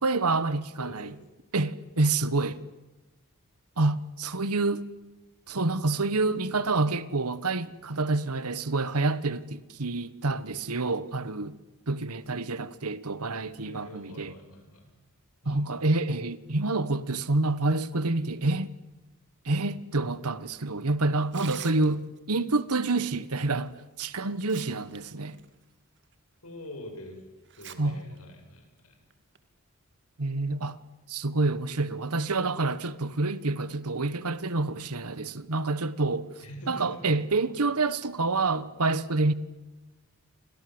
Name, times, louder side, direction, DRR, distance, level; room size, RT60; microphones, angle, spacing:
voice 1, 0.0-1.1 1.5-2.6 3.8-4.9 5.5-11.6 11.9-14.3 15.4-18.7 19.4-23.7 24.0-25.4 27.8-28.0 30.2-30.8 31.1-36.3 36.7-39.3, right 3 dB, 90° right, 1.4 m, -28 dB
voice 2, 0.8-1.2 13.6-14.9 15.4-15.7 26.4-27.2 27.6-29.0 36.4-37.2, equal, 80° left, 7.9 m, -44 dB
Tearing, 21.2-22.2 23.7-23.8 24.2-25.0 25.3-25.5 26.1-26.2 27.5-27.8 28.2-28.3 29.1-29.4, right 10 dB, 55° right, 2.3 m, -45 dB
29.5 x 25.5 x 8.0 m
head